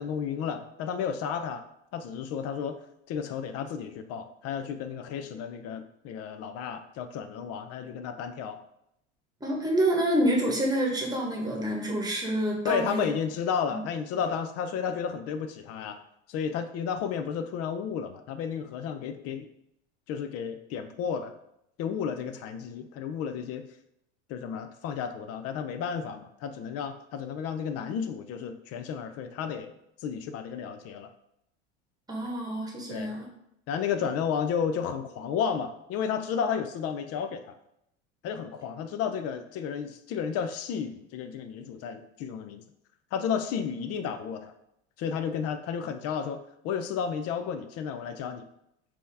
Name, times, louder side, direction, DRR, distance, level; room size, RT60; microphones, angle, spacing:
voice 1, 0.0-1.6 1.9-2.8 3.1-8.6 12.6-16.0 16.3-19.5 20.1-21.3 21.8-23.7 24.3-29.7 30.0-31.1 32.9-33.1 33.7-37.6 38.2-42.6 43.1-44.5 45.0-46.4 46.6-48.5, left 7 dB, 45° left, 9 dB, 0.5 m, -32 dB
voice 2, 9.4-13.1 13.7-13.8 32.1-33.3, right 1 dB, 10° right, -1 dB, 1.2 m, -27 dB
4.2 x 2.9 x 3.4 m, 0.79 s
hypercardioid pair, 85°, 34 cm